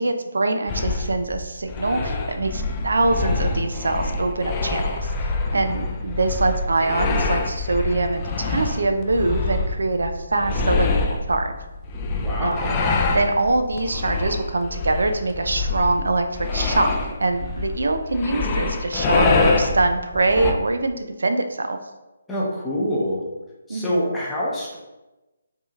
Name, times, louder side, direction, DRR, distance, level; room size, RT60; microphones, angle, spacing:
voice 1, 0.0-5.1 5.5-10.9 11.3-11.5 12.4-12.7 13.1-21.8 23.7-24.1, right 2 dB, 70° right, 7 dB, 0.4 m, -23 dB
sound 1, 0.7-20.5, left 3 dB, 25° left, 0.4 m, -25 dB
voice 2, 12.2-12.8 22.3-23.2 23.7-24.8, equal, 5° left, -7 dB, 0.8 m, -25 dB
4.7 x 2.8 x 2.4 m, 1.1 s
figure-of-eight pair, 145°, 0 cm